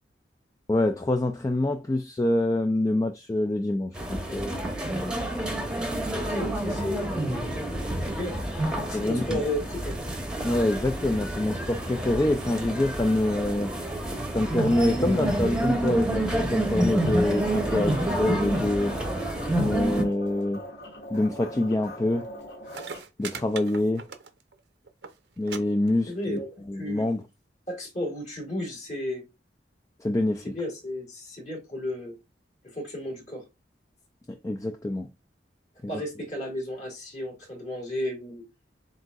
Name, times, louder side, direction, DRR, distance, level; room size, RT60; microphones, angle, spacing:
voice 1, 0.7-4.6 8.9-9.4 10.4-13.7 14.3-19.0 19.6-20.6 21.1-22.3 23.2-24.0 25.4-26.4 26.7-27.2 30.0-30.5 34.3-35.1 35.8-36.0, left 1 dB, 20° left, 0.3 m, -26 dB
sound 1, 3.9-20.0, right 1 dB, 5° right, 0.9 m, -29 dB
voice 2, 6.1-7.1 8.0-8.3 8.8-10.0 26.1-26.5 26.7-27.1 27.7-29.2 30.4-32.2 32.6-33.4 35.9-38.4, left 1 dB, 40° left, 2.1 m, -33 dB
sound 2, 17.0-23.0, equal, 70° left, 1.9 m, -42 dB
sound 3, 22.4-22.5 22.7-24.6 24.9-25.1 25.5-25.6 25.9-26.4 27.2-27.3, right 6 dB, 70° right, 0.6 m, -39 dB
7.6 x 2.6 x 2.4 m
head